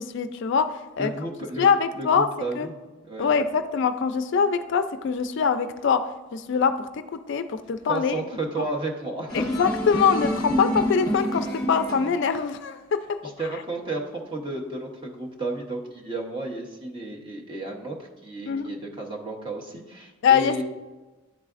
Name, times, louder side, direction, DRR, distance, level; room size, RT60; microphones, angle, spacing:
voice 1, 0.0-1.1 1.6-2.3 2.6-2.7 3.2-8.2 9.3-13.2 18.5-18.6 20.2-20.6, left 6 dB, 60° left, 11 dB, 0.3 m, -23 dB
voice 2, 1.0-1.7 1.9-2.8 3.0-3.4 7.9-9.4 13.2-20.6, right 2 dB, 25° right, -1 dB, 0.9 m, -32 dB
sound 1, 9.3-12.2, equal, 20° left, 1.3 m, -28 dB
10.5 x 4.1 x 2.5 m, 1.2 s
head